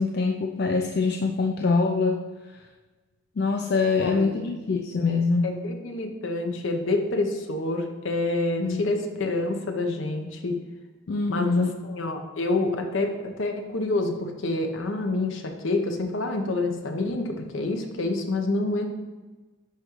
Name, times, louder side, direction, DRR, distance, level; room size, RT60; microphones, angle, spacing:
voice 1, 0.0-2.2 3.4-5.5 8.6-8.8 11.1-11.7, left 4 dB, 50° left, 2 dB, 0.4 m, -24 dB
voice 2, 4.0-4.5 5.4-10.6 11.3-18.9, left 2 dB, 75° left, 4 dB, 0.8 m, -27 dB
10.5 x 3.6 x 3.1 m, 1.3 s
head